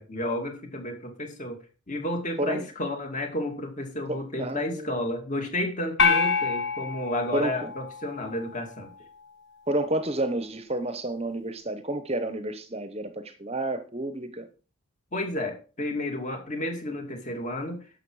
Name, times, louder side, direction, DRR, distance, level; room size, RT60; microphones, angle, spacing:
voice 1, 0.0-1.6 1.9-8.9 15.1-17.8, left 1 dB, 35° left, 2.6 m, -31 dB
voice 2, 2.4-2.7 4.1-4.9 7.3-7.7 9.7-14.5, right 1 dB, 30° right, 0.9 m, -30 dB
sound 1, 6.0-8.5, left 5 dB, 50° left, 1.8 m, -26 dB
11.5 x 7.3 x 4.8 m
head